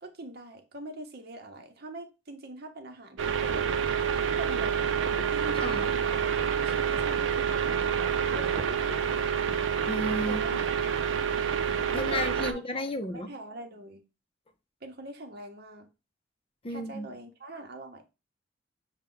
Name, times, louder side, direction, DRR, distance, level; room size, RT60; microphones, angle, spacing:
voice 1, 0.0-3.7 4.2-5.0 5.3-9.4 10.3-10.8 11.9-12.9 13.1-14.0 14.8-15.9 16.7-18.0, right 2 dB, 55° right, 0.9 m, -43 dB
sound 1, 3.2-12.5, right 7 dB, 85° right, 0.5 m, -28 dB
voice 2, 9.8-10.4 11.9-13.3 16.6-17.1, left 1 dB, 30° left, 0.5 m, -33 dB
6.4 x 2.2 x 3.8 m
head